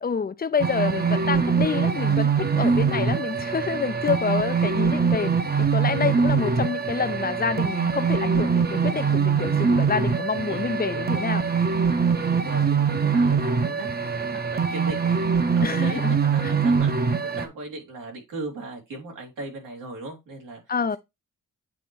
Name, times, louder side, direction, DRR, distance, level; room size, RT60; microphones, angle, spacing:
voice 1, 0.0-5.3 5.6-11.4 15.6-16.2 16.4-16.5 20.7-21.0, left 6 dB, 30° left, 0.6 m, -27 dB
sound 1, 0.6-17.4, right 5 dB, 30° right, 0.9 m, -23 dB
voice 2, 2.6-2.9 10.5-11.4 12.0-16.9 17.2-20.6, right 2 dB, 90° right, 3.0 m, -38 dB
8.6 x 3.1 x 4.6 m
cardioid pair, 85°, 31 cm